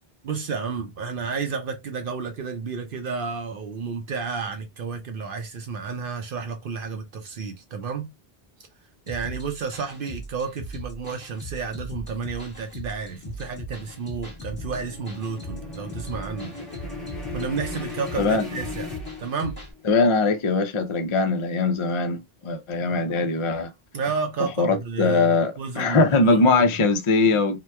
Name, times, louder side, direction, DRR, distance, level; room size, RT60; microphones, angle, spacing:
voice 1, 0.2-8.1 9.1-16.5 17.3-18.9 19.2-19.6 23.9-26.6, right 5 dB, 65° right, 0.7 m, -31 dB
sound 1, 9.1-19.7, equal, 20° left, 1.3 m, -39 dB
sound 2, 12.8-19.8, left 4 dB, ahead, 1.1 m, -38 dB
voice 2, 19.8-23.7 24.6-27.6, left 3 dB, 40° left, 0.4 m, -21 dB
2.9 x 2.2 x 3.2 m
omnidirectional pair, 1.0 m